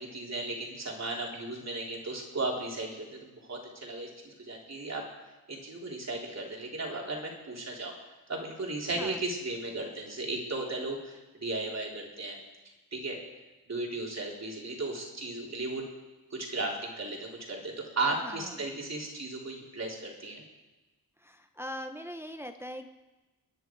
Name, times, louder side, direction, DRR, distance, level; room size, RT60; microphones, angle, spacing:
voice 1, 0.0-5.0 5.5-7.9 8.3-12.4 12.9-13.2 13.7-15.9 16.3-20.4, right 2 dB, 40° right, -2 dB, 3.8 m, -35 dB
voice 2, 18.2-18.5 21.2-22.9, equal, 5° right, 6 dB, 0.8 m, -41 dB
26.0 x 10.0 x 4.7 m, 1.1 s
wide cardioid pair, 95°, 38 cm